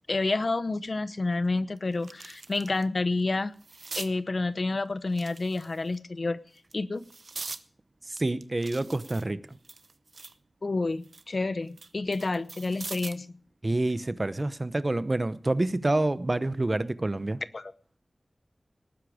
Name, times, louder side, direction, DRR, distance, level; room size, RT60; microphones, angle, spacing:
voice 1, 0.1-3.5 4.0-6.4 6.7-7.1 10.6-13.3 17.5-17.7, left 3 dB, 65° left, 15 dB, 0.8 m, -29 dB
sound 1, 0.8-0.9 1.4-2.9 3.2-4.1 5.1-6.0 6.6-7.6 8.2-10.4 10.8-13.3 14.7-14.9, right 3 dB, 75° right, 0.8 m, -43 dB
voice 2, 8.1-9.6 13.6-17.4, right 2 dB, 40° right, 14 dB, 0.9 m, -28 dB
18.5 x 10.0 x 5.0 m, 0.43 s
wide cardioid pair, 65°, 0 cm